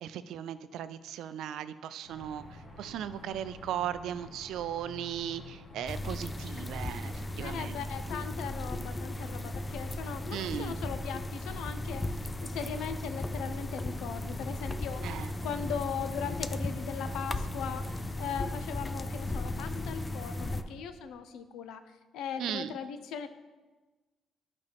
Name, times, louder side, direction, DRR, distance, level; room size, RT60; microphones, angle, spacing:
voice 1, 0.0-7.8 10.3-10.8 15.0-15.3 22.4-22.7, right 10 dB, 85° right, 13 dB, 0.4 m, -37 dB
sound 1, 2.0-20.7, left 1 dB, 60° left, 1.9 m, -49 dB
sound 2, 5.9-20.6, left 1 dB, 25° left, 0.4 m, -36 dB
voice 2, 7.4-12.0 12.4-15.0 15.4-21.8 22.1-23.3, left 7 dB, 85° left, 10 dB, 0.6 m, -39 dB
10.5 x 5.2 x 3.5 m, 1.2 s
cardioid pair, 90°, 0 cm